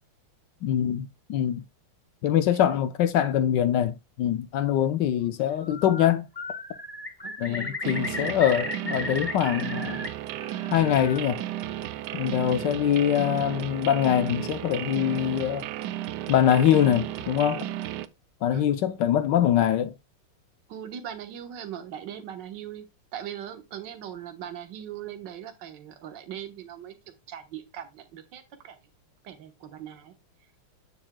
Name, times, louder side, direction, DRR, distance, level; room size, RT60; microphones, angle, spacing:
voice 1, 0.6-1.6 2.2-6.2 7.4-10.0 10.7-11.4 12.1-15.7 16.3-17.6 18.4-19.9, left 10 dB, 70° left, 1.1 m, -23 dB
voice 2, 2.5-2.8 7.2-7.8 18.5-18.7 20.7-22.8 23.1-28.8 29.2-30.1, right 10 dB, 60° right, 1.7 m, -40 dB
Bird, 5.5-6.1 6.4-10.1 10.4-11.2, left 3 dB, 20° left, 0.6 m, -35 dB
sound 1, 7.8-18.1, right 13 dB, 85° right, 0.9 m, -34 dB
10.0 x 7.2 x 2.2 m
omnidirectional pair, 2.4 m